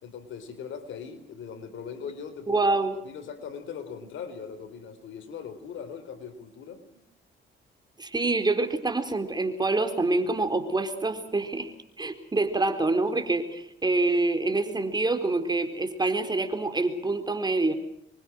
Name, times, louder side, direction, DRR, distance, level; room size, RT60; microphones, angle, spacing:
voice 1, 0.0-2.6 3.0-7.0, left 7 dB, 75° left, 11 dB, 4.4 m, -40 dB
voice 2, 2.5-3.0 8.0-11.7 12.0-17.7, right 2 dB, 20° right, 7 dB, 4.2 m, -26 dB
26.0 x 23.5 x 6.3 m, 0.75 s
cardioid pair, 90°, 20 cm